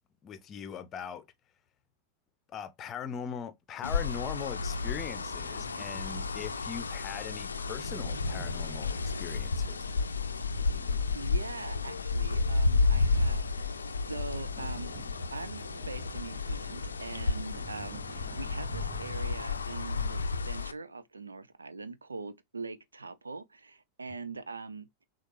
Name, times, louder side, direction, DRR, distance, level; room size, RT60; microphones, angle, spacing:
voice 1, 0.2-1.3 2.5-9.9, left 7 dB, 30° left, 0.7 m, -40 dB
sound 1, 3.8-20.7, left 4 dB, 75° left, 0.4 m, -32 dB
sound 2, 4.6-20.2, right 6 dB, 25° right, 0.8 m, -50 dB
voice 2, 11.1-13.8 14.1-14.9 15.3-24.9, right 3 dB, 75° right, 0.4 m, -42 dB
6.4 x 2.4 x 3.2 m
figure-of-eight pair, 90°, 0 cm